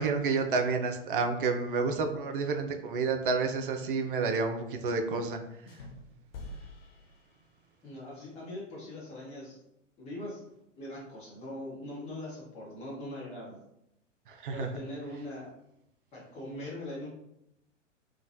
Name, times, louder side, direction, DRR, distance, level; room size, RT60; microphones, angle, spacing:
voice 1, 0.0-5.4 14.3-14.7, right 4 dB, 45° right, 5 dB, 0.4 m, -29 dB
sound 1, 5.7-7.9, left 2 dB, 50° left, 0.6 m, -47 dB
voice 2, 7.8-9.6 10.0-10.4 10.8-13.6 14.5-15.5 16.1-17.1, left 1 dB, 15° left, -7 dB, 0.9 m, -41 dB
2.9 x 2.2 x 2.6 m, 0.81 s
figure-of-eight pair, 105°, 37 cm